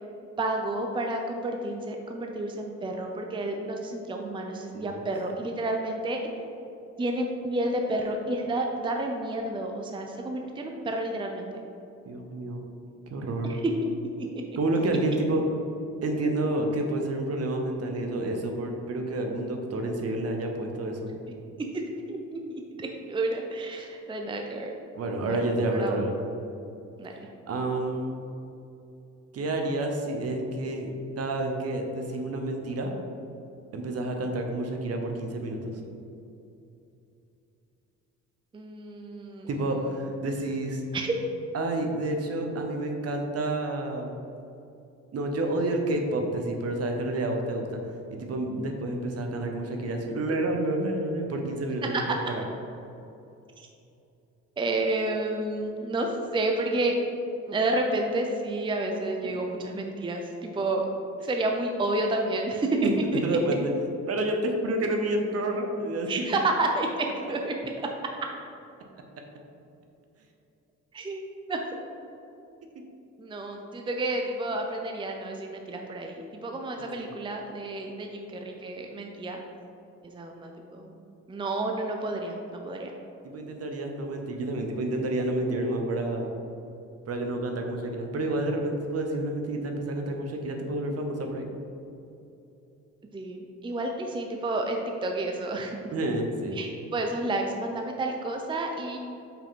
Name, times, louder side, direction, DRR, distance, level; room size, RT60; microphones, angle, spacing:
voice 1, 0.4-6.2 7.0-11.6 13.4-13.9 21.7-21.8 22.1-24.7 25.3-25.4 25.7-26.0 27.0-27.1 38.5-39.5 40.9-41.2 51.9-52.0 53.6-53.7 54.6-57.0 57.5-60.8 61.2-63.2 66.1-67.9 70.9-71.2 71.5-71.6 73.2-79.4 80.0-80.9 81.3-82.9 93.1-95.8 96.5-99.0, right 2 dB, 15° right, 2 dB, 0.5 m, -30 dB
voice 2, 4.7-5.1 12.1-12.6 13.1-13.6 14.6-15.4 16.0-21.1 25.0-26.1 27.1-27.2 27.5-28.2 29.3-30.9 31.2-32.9 33.7-35.7 39.5-40.8 41.5-44.1 45.1-47.8 48.1-52.4 62.8-62.9 63.2-63.7 64.1-66.1 76.8-77.1 83.2-86.3 87.1-91.5 95.9-96.6, right 2 dB, 55° right, 3 dB, 0.8 m, -29 dB
5.5 x 4.7 x 3.7 m, 2.8 s
cardioid pair, 90°, 30 cm